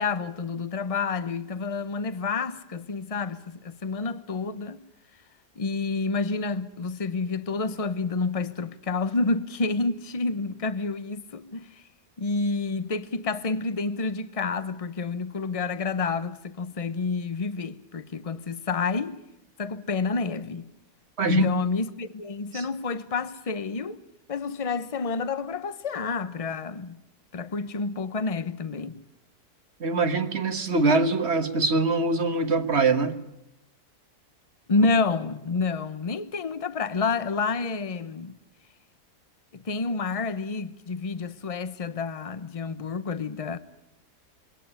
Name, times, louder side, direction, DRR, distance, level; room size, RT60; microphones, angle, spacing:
voice 1, 0.0-4.8 5.6-11.7 12.2-19.2 19.6-20.7 21.2-24.0 24.3-27.0 27.3-29.0 34.7-38.3 39.5-43.6, left 4 dB, 30° left, 0.8 m, -29 dB
voice 2, 29.8-33.2, right 3 dB, 45° right, 1.5 m, -23 dB
22.5 x 18.0 x 10.0 m
omnidirectional pair, 1.7 m